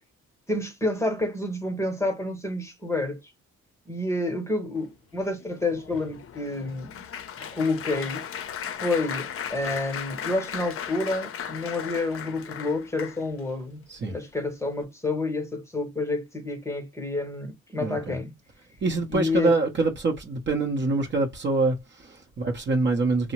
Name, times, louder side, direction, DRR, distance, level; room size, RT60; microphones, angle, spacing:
voice 1, 0.5-3.2 3.9-6.9 7.4-8.2 8.8-18.3 19.1-19.5, left 2 dB, 10° left, 0.9 m, -29 dB
Applause, 5.2-13.5 14.1-14.4 14.6-14.8, left 8 dB, 50° left, 0.5 m, -37 dB
voice 2, 17.8-18.2 18.8-23.3, right 3 dB, 40° right, 0.7 m, -25 dB
2.7 x 2.0 x 2.9 m
cardioid pair, 90°, 30 cm